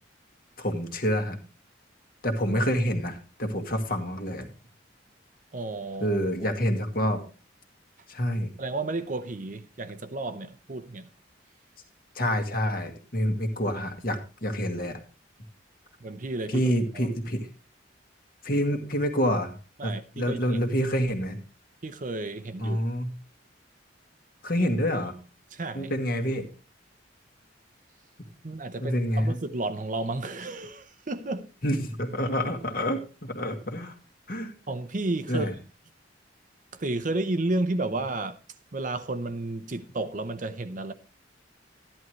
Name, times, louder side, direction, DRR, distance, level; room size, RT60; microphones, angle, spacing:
voice 1, 0.6-1.4 2.2-4.5 6.0-7.2 8.1-8.5 12.2-15.0 16.5-17.5 18.4-19.5 19.8-21.4 22.6-23.1 24.4-25.1 25.7-26.5 28.8-29.4 31.6-34.0 34.3-34.5 35.3-35.5, equal, 50° left, 1.8 m, -27 dB
voice 2, 5.5-6.5 8.6-11.1 16.0-17.1 19.8-20.6 21.8-22.8 25.5-25.9 28.4-31.5 34.7-35.5 36.7-38.4 38.7-40.9, right 2 dB, 40° right, 0.7 m, -32 dB
12.5 x 11.0 x 3.2 m
head